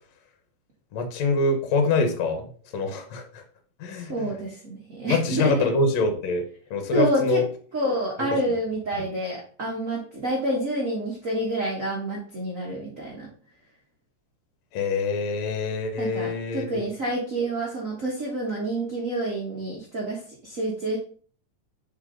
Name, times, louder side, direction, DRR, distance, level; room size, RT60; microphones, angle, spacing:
voice 1, 0.9-2.5 2.7-3.4 3.8-4.3 5.1-6.4 6.7-7.4 9.0-9.1 14.7-16.8, left 3 dB, 65° left, 5 dB, 2.0 m, -25 dB
voice 2, 3.9-5.7 6.9-7.4 7.7-13.3 16.0-21.0, right 1 dB, 55° right, -3 dB, 0.9 m, -28 dB
6.8 x 4.6 x 3.8 m, 0.43 s
omnidirectional pair, 3.7 m